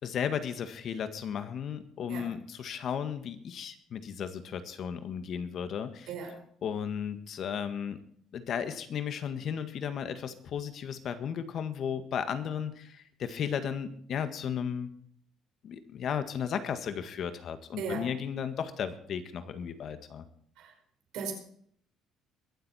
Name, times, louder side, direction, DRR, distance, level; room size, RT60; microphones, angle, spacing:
voice 1, 0.0-6.1 6.6-8.0 8.3-14.9 15.6-20.2, left 8 dB, 55° left, 10 dB, 1.8 m, -35 dB
voice 2, 6.1-6.4 17.8-18.1 20.6-20.7 21.1-21.3, right 5 dB, 80° right, 2 dB, 5.2 m, -37 dB
22.5 x 8.0 x 4.4 m, 0.62 s
cardioid pair, 105°, 0 cm